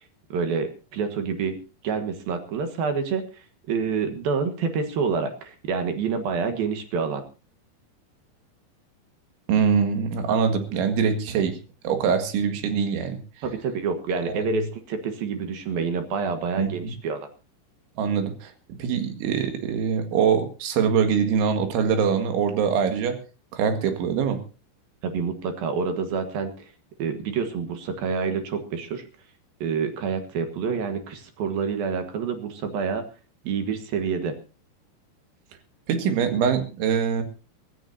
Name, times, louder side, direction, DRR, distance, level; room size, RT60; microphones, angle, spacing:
voice 1, 0.3-1.6 1.8-7.2 13.4-17.3 25.0-26.5 27.0-29.0 29.6-33.0 33.4-34.4, right 5 dB, 60° right, 7 dB, 3.0 m, -27 dB
voice 2, 9.5-11.6 11.8-13.5 14.3-14.4 16.6-17.0 18.0-23.2 23.5-24.4 35.9-37.2, right 6 dB, 85° right, 7 dB, 4.3 m, -23 dB
24.0 x 14.0 x 2.7 m, 0.32 s
omnidirectional pair, 5.2 m